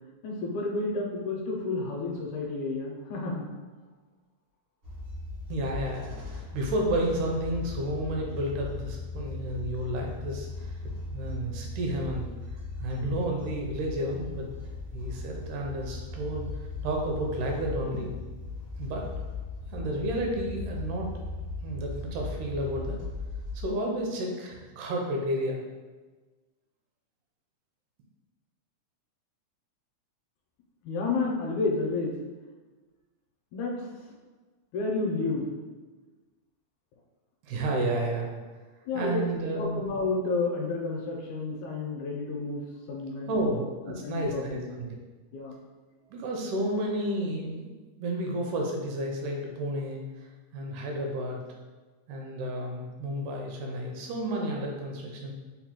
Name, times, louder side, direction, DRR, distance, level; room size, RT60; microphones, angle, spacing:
voice 1, 0.2-3.5 30.8-32.1 33.5-33.8 34.7-35.6 38.9-39.2 39.6-42.6 42.9-43.5 44.0-44.4 45.3-45.6, left 3 dB, 80° left, -2 dB, 1.9 m, -30 dB
sound 1, 4.8-23.6, left 3 dB, 60° right, 0.7 m, -38 dB
voice 2, 5.5-10.7 11.1-12.3 12.8-14.5 14.9-16.5 16.8-18.1 18.8-19.1 19.7-21.1 21.6-23.0 23.5-25.6 37.4-38.4 38.9-39.9 43.3-44.9 46.1-51.4 52.1-55.3, right 1 dB, 85° right, 0 dB, 2.1 m, -31 dB
5.3 x 2.2 x 2.9 m, 1.3 s
omnidirectional pair, 3.5 m